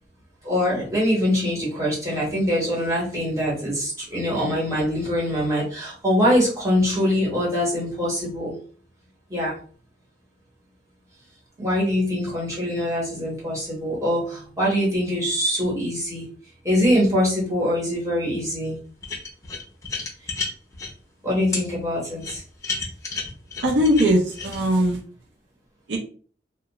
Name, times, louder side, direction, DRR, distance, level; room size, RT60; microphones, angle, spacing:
voice 1, 0.4-8.5 9.3-9.6 11.6-16.3 16.6-18.8 21.2-22.4, equal, 20° right, -6 dB, 1.2 m, -23 dB
sound 1, 19.0-20.9 21.5-21.6 22.2-24.6, left 4 dB, 20° left, 0.6 m, -31 dB
voice 2, 23.6-25.0 25.9-26.0, equal, 80° right, 0 dB, 0.6 m, -20 dB
2.3 x 2.2 x 2.9 m, 0.43 s
head